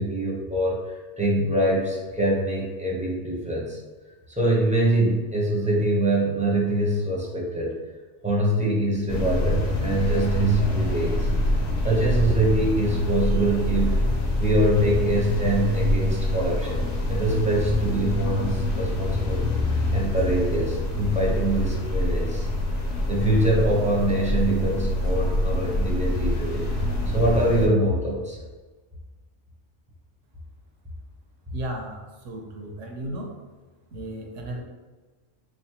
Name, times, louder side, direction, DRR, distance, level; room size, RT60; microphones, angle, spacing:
voice 1, 0.0-3.8 4.4-7.7 8.2-11.6 11.8-14.0 14.4-19.5 19.9-22.5 23.1-26.6 27.1-28.4, right 1 dB, 10° right, -4 dB, 0.6 m, -24 dB
sound 1, 9.1-27.7, left 1 dB, 60° left, 0.9 m, -25 dB
voice 2, 31.5-33.3 33.9-34.6, right 1 dB, 75° right, 1 dB, 1.1 m, -34 dB
4.0 x 3.1 x 2.9 m, 1.3 s
omnidirectional pair, 1.3 m